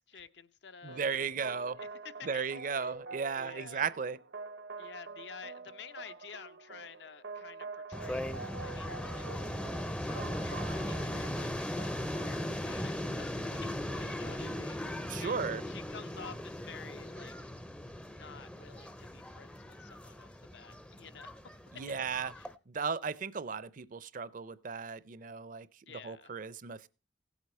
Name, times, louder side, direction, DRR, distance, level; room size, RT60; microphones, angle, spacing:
voice 1, 0.1-2.9 3.3-3.9 4.8-9.4 10.0-17.5 18.1-21.5 22.4-22.5 25.9-26.4, left 6 dB, 70° left, 0.7 m, -51 dB
voice 2, 0.8-1.8 2.2-4.2 15.1-15.6 21.7-22.3 22.7-25.7 26.0-26.9, right 5 dB, 45° right, 0.5 m, -35 dB
sound 1, 0.9-12.5, right 4 dB, 75° right, 0.8 m, -47 dB
sound 2, 7.9-22.5, left 1 dB, 5° left, 0.5 m, -38 dB
17.0 x 8.2 x 4.2 m
head